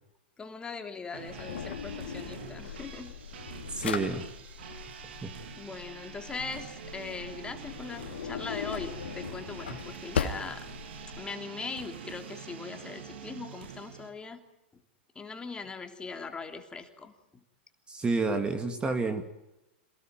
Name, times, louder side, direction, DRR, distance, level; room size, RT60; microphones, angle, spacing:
voice 1, 0.4-3.1 5.6-10.7 11.2-14.4 15.1-17.1, left 4 dB, 15° left, 5 dB, 3.4 m, -40 dB
sound 1, 1.1-14.1, right 8 dB, 75° right, 3.9 m, -46 dB
Drawer open or close, 1.3-11.2, left 7 dB, 80° left, 3.1 m, -39 dB
voice 2, 3.7-4.2 5.2-5.3 17.9-19.2, right 3 dB, 15° right, 7 dB, 2.6 m, -29 dB
28.0 x 19.5 x 9.4 m, 0.91 s
hypercardioid pair, 115°, 6 cm